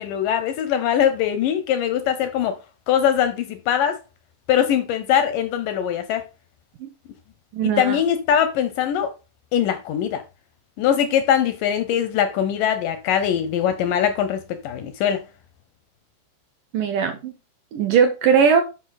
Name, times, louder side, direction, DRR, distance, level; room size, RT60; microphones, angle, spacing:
voice 1, 0.0-2.6 2.9-4.0 4.5-6.2 7.6-9.1 9.5-10.2 10.8-15.2, left 9 dB, 85° left, 1.9 m, -22 dB
voice 2, 7.5-8.0 16.7-17.3 17.7-18.6, right 7 dB, 70° right, 2.1 m, -19 dB
10.5 x 5.4 x 4.0 m
omnidirectional pair, 5.0 m